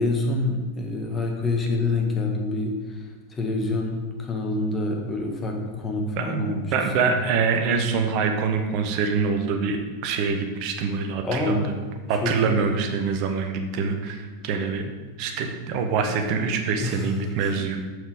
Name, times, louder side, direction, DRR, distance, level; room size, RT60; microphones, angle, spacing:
voice 1, 0.0-6.7 7.0-7.1 11.2-11.8 12.2-12.7 16.8-17.0 17.4-17.5, left 2 dB, 20° left, 1 dB, 1.6 m, -27 dB
voice 2, 6.2-11.7 12.1-14.9 15.2-17.8, right 5 dB, 45° right, 5 dB, 1.0 m, -25 dB
7.0 x 6.3 x 5.0 m, 1.4 s
figure-of-eight pair, 90°, 0 cm